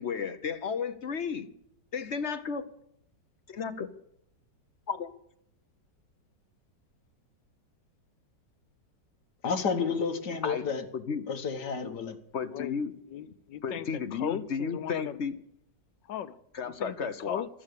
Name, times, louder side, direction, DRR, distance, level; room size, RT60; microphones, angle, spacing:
voice 1, 0.0-1.5 1.9-2.7 3.5-3.9 4.9-5.1 10.4-10.6 10.9-11.2 12.3-12.9 13.6-15.3 16.5-17.4, left 6 dB, 45° left, 10 dB, 1.0 m, -33 dB
voice 2, 9.4-10.9 11.3-12.2, left 5 dB, 65° left, 6 dB, 2.1 m, -30 dB
voice 3, 12.4-12.8 13.1-15.2 16.1-17.5, left 11 dB, 85° left, 14 dB, 1.5 m, -38 dB
15.0 x 13.0 x 6.7 m, 0.71 s
omnidirectional pair, 1.9 m